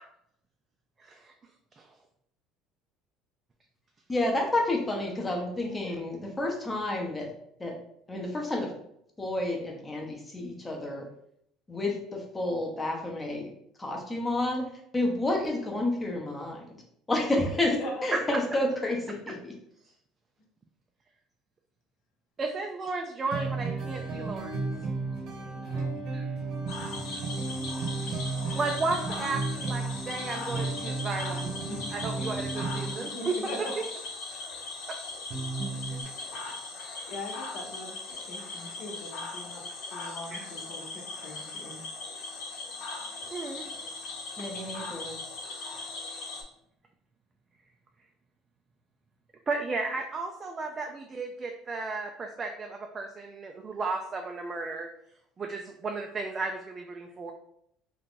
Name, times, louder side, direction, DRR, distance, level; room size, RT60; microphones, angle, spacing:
voice 1, 4.1-7.3 7.6-7.8 8.1-8.7 9.2-11.1 11.7-13.5 13.8-16.6 17.1-17.7 18.0-19.5 44.4-45.2, left 1 dB, 15° left, 1 dB, 0.7 m, -30 dB
voice 2, 17.7-18.0 25.5-25.9 30.2-30.3 30.6-30.7 31.7-31.8 33.0-33.7 37.1-39.6 39.9-41.8, left 1 dB, 55° left, 0 dB, 0.9 m, -40 dB
voice 3, 22.4-24.7 26.1-26.3 28.0-28.2 28.5-31.5 31.9-33.7 34.9-35.0 40.3-40.5 43.3-43.7 49.5-54.9 55.4-57.3, right 3 dB, 25° right, 3 dB, 0.3 m, -34 dB
sound 1, 23.3-32.9 35.3-36.0, right 3 dB, 50° right, 0.8 m, -33 dB
Cricket / Frog, 26.7-46.4, left 3 dB, 80° left, 1.2 m, -39 dB
2.8 x 2.4 x 3.6 m, 0.71 s
cardioid pair, 140°, 0 cm